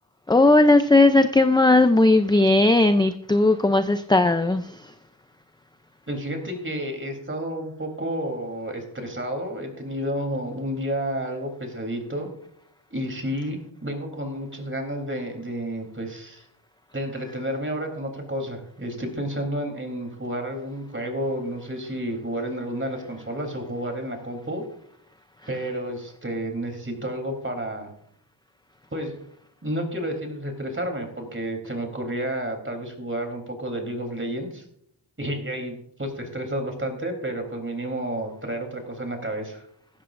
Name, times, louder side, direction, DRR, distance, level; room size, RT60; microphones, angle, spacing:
voice 1, 0.3-4.9, left 2 dB, 10° left, 9 dB, 0.5 m, -17 dB
voice 2, 6.1-12.3 12.9-16.4 16.9-24.6 25.5-27.9 28.9-29.1 29.6-34.6 35.2-39.6, right 1 dB, 25° right, 4 dB, 3.5 m, -31 dB
15.5 x 14.0 x 2.6 m, 0.69 s
wide cardioid pair, 85°, 49 cm